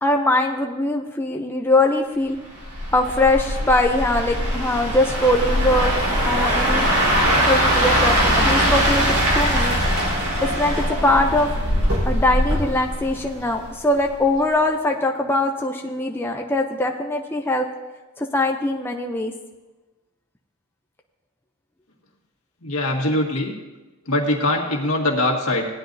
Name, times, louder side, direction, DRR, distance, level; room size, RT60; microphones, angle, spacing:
voice 1, 0.0-2.4 2.9-6.0 6.3-6.9 7.5-9.8 10.4-10.8 11.0-11.5 12.1-17.7 18.2-19.3, left 2 dB, 10° left, 2 dB, 0.5 m, -21 dB
sound 1, 2.6-13.7 14.1-14.4, equal, 80° right, 3.8 m, -21 dB
voice 2, 22.6-23.5 24.1-25.7, left 1 dB, 80° left, 0 dB, 1.9 m, -22 dB
17.0 x 10.5 x 2.7 m, 1.2 s
head